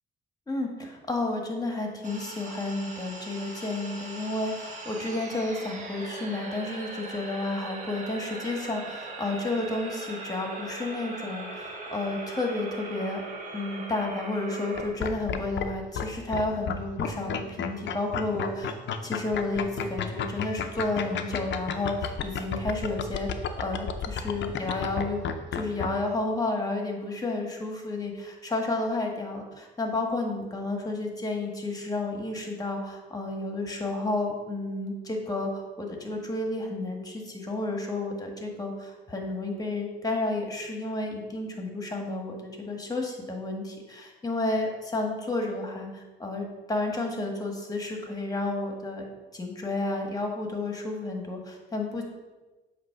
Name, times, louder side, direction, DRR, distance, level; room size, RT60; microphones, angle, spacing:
voice 1, 0.5-13.2 13.5-18.7 19.0-23.3 23.6-49.0 49.3-52.0, left 2 dB, 20° left, 2 dB, 1.5 m, -31 dB
sound 1, 2.0-14.9, right 2 dB, 40° right, 1.5 m, -40 dB
sound 2, 14.7-15.7 15.9-16.0 16.3-25.9, left 8 dB, 65° left, 0.6 m, -31 dB
7.9 x 3.1 x 5.6 m, 1.2 s
cardioid pair, 90°, 20 cm